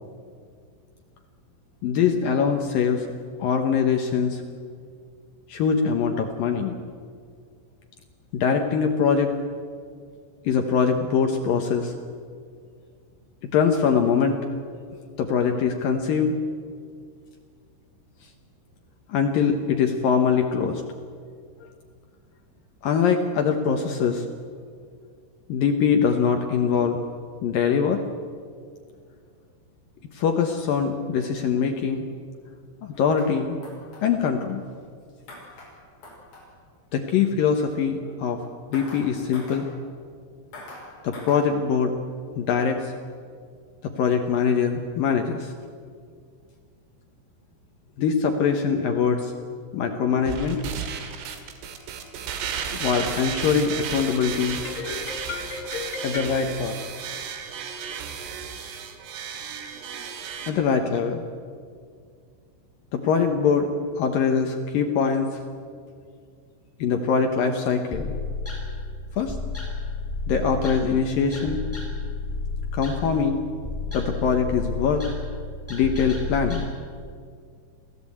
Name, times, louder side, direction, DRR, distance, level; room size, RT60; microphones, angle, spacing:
voice 1, 1.8-3.1 3.4-4.4 5.5-6.8 8.3-9.3 10.4-11.9 13.5-14.4 15.2-16.4 19.1-20.8 22.8-24.3 25.5-27.0 27.4-28.0 30.1-32.1 32.8-33.6 34.0-34.6 36.9-38.4 38.7-39.7 41.0-41.9 42.4-42.9 43.8-45.5 48.0-49.3 49.7-50.6 52.7-56.8 60.5-61.2 62.9-63.7 64.0-65.3 66.8-68.1 69.2-69.4 70.3-71.6 72.7-73.4 73.9-75.0 75.7-76.7, left 6 dB, 80° left, 4 dB, 2.0 m, -23 dB
sound 1, 32.9-33.3 33.6-34.0 35.3-35.7 36.0-36.4 38.7-39.1 39.3-39.6 40.5-40.9 41.1-41.4, left 2 dB, 50° left, 7.6 m, -42 dB
sound 2, 50.3-60.5, right 7 dB, 80° right, 4.4 m, -34 dB
sound 3, 67.9-76.6, left 3 dB, 5° left, 3.8 m, -32 dB
25.5 x 16.0 x 8.6 m, 2.1 s
omnidirectional pair, 5.7 m